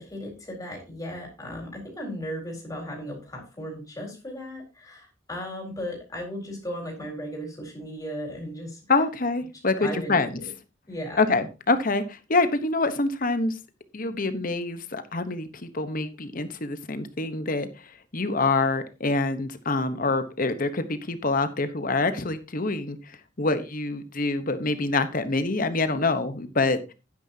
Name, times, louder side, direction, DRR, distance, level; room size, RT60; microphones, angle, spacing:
voice 1, 0.0-8.8 9.8-10.4 10.9-11.2, equal, 20° left, -1 dB, 4.5 m, -36 dB
voice 2, 8.9-10.3 11.2-13.6 13.9-26.9, left 3 dB, 45° left, 10 dB, 1.1 m, -26 dB
12.0 x 9.9 x 2.8 m, 0.29 s
head